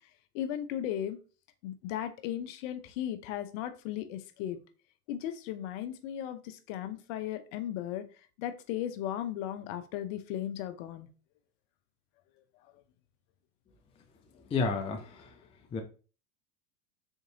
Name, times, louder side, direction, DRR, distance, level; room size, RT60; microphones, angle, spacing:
voice 1, 0.3-1.2 1.6-4.6 5.1-8.1 8.4-11.1, left 11 dB, 55° left, 10 dB, 0.7 m, -36 dB
voice 2, 14.5-15.3 15.7-15.8, left 4 dB, 15° left, 5 dB, 0.4 m, -31 dB
3.9 x 3.6 x 2.7 m, 0.36 s
hypercardioid pair, 100°, 46 cm